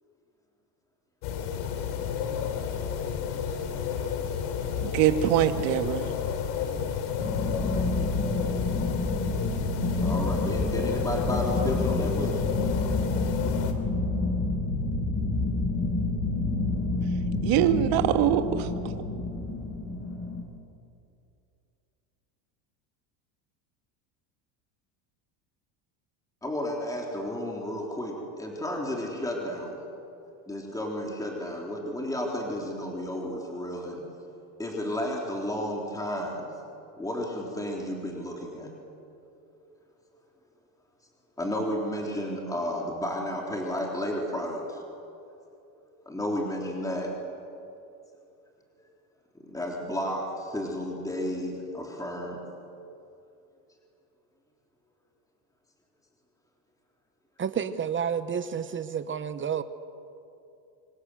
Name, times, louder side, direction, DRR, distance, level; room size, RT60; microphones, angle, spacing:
sound 1, 1.2-13.7, left 7 dB, 80° left, 3.4 m, -31 dB
voice 1, 4.8-6.1 17.4-18.7, right 12 dB, 70° right, 1.9 m, -23 dB
sound 2, 7.2-20.4, left 2 dB, 25° left, 5.3 m, -29 dB
voice 2, 10.0-12.4 26.4-29.8 30.5-34.0 34.6-36.5 37.0-38.7 39.5-39.6 41.4-44.8 45.8-47.1 49.4-52.4, left 1 dB, 5° left, 3.8 m, -32 dB
voice 3, 57.4-59.6, right 7 dB, 25° right, 1.0 m, -30 dB
26.0 x 26.0 x 8.1 m
cardioid pair, 130°, 46 cm